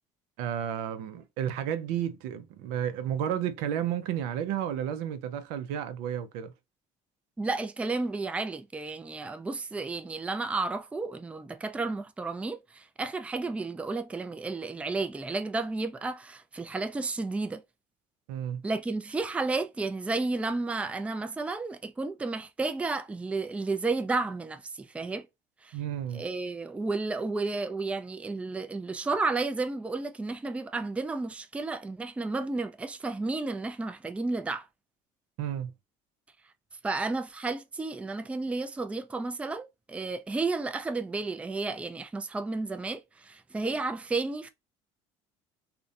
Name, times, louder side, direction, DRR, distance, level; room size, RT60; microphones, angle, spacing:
voice 1, 0.4-6.5 18.3-18.6 25.7-26.2 35.4-35.7, right 9 dB, 75° right, 0.5 m, -32 dB
voice 2, 7.4-17.6 18.6-25.3 25.6-25.8 26.1-34.7 36.8-44.5, right 3 dB, 10° right, 0.3 m, -32 dB
2.5 x 2.1 x 2.6 m
supercardioid pair, 85°, 15 cm